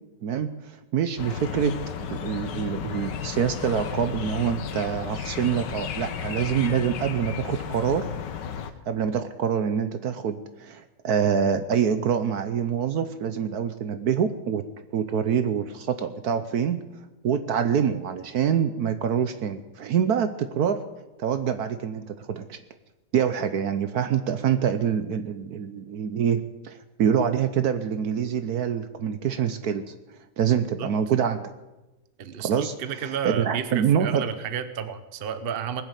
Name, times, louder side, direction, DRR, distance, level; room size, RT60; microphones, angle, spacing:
voice 1, 0.2-1.8 2.1-8.1 8.9-14.6 14.9-16.8 17.2-20.8 21.2-22.6 23.1-29.9 30.4-31.5 32.4-34.2, right 8 dB, 65° right, 10 dB, 1.2 m, -25 dB
sound 1, 1.2-8.7, left 8 dB, 75° left, 1.6 m, -33 dB
voice 2, 32.2-35.8, right 7 dB, 40° right, 10 dB, 0.9 m, -31 dB
20.0 x 7.3 x 8.2 m, 1.1 s
omnidirectional pair, 1.9 m